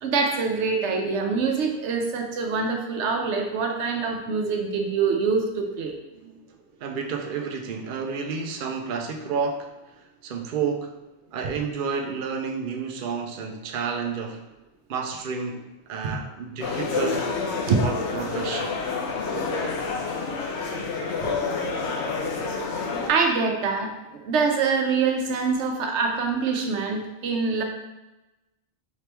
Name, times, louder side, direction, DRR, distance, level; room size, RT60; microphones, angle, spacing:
voice 1, 0.0-5.9 17.7-17.8 23.0-27.6, right 4 dB, 80° right, 3 dB, 1.0 m, -25 dB
voice 2, 6.1-6.4 6.8-9.7 10.2-10.9 11.3-14.4 14.9-17.3 17.8-18.8, right 5 dB, 60° right, 3 dB, 0.6 m, -30 dB
sound 1, 16.6-23.1, left 4 dB, 80° left, 1.0 m, -28 dB
4.9 x 3.3 x 2.9 m, 1.0 s
omnidirectional pair, 1.1 m